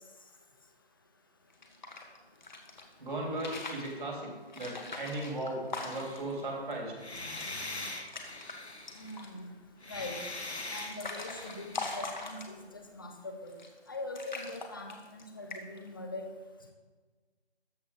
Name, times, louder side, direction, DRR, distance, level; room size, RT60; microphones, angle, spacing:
sound 1, 1.5-2.8 3.3-3.9 4.5-6.3 6.7-6.8 7.0-7.6 7.9-8.6 8.9-9.4 10.1-12.8 13.5-13.9 14.1-15.2 15.5-15.9, left 3 dB, 45° left, 1.7 m, -42 dB
voice 1, 3.0-6.9, right 1 dB, 50° right, -1 dB, 3.7 m, -37 dB
sound 2, 5.9-6.5 7.0-9.3 9.8-12.1, left 2 dB, 80° left, 1.9 m, -42 dB
voice 2, 8.9-9.5 9.9-10.2 10.7-13.5 13.9-16.3, left 2 dB, 20° left, 3 dB, 0.9 m, -42 dB
13.5 x 6.7 x 5.4 m, 1.4 s
figure-of-eight pair, 165°, 32 cm